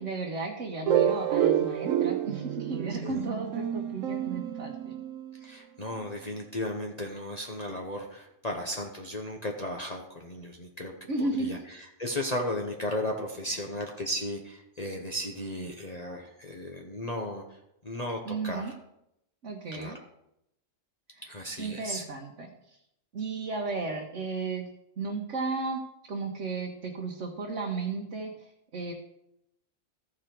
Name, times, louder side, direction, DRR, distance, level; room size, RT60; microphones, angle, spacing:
voice 1, 0.0-4.9 11.1-11.5 13.5-13.6 18.2-18.7 19.4-20.0 21.1-22.8 23.1-24.7 25.0-25.8 26.1-28.9, right 3 dB, 65° right, 0 dB, 1.3 m, -34 dB
sound 1, 0.9-5.4, right 10 dB, 90° right, 1.1 m, -28 dB
voice 2, 5.4-10.9 11.2-17.4 17.8-18.7 19.7-20.0 21.2-22.0, left 1 dB, 35° left, 1 dB, 0.9 m, -35 dB
14.5 x 4.9 x 4.5 m, 0.82 s
omnidirectional pair, 1.4 m